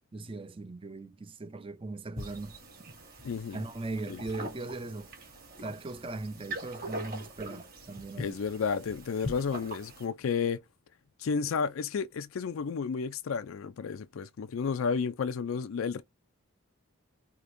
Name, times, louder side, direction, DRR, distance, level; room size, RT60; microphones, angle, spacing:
voice 1, 0.1-2.6 2.9-3.0 3.5-5.1 5.6-8.4, right 2 dB, 25° right, 0.5 m, -39 dB
sound 1, 2.1-10.1, equal, 45° right, 2.1 m, -42 dB
voice 2, 3.2-3.6 4.1-4.2 8.2-10.6 11.2-16.0, left 5 dB, 75° left, 0.4 m, -32 dB
5.0 x 2.9 x 2.6 m
head